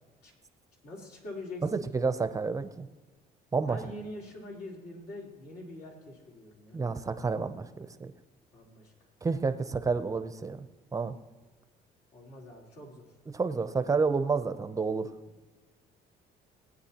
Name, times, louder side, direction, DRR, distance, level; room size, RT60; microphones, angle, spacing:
voice 1, 0.8-2.1 3.7-6.8 8.5-8.9 12.1-13.0 13.5-13.6, left 1 dB, 70° left, -2 dB, 3.6 m, -44 dB
voice 2, 1.7-2.9 3.5-3.8 6.7-8.1 9.2-10.6 10.9-11.2 13.3-15.1, right 4 dB, 20° right, 11 dB, 0.6 m, -30 dB
18.5 x 9.4 x 2.9 m, 1.3 s
cardioid pair, 110°, 17 cm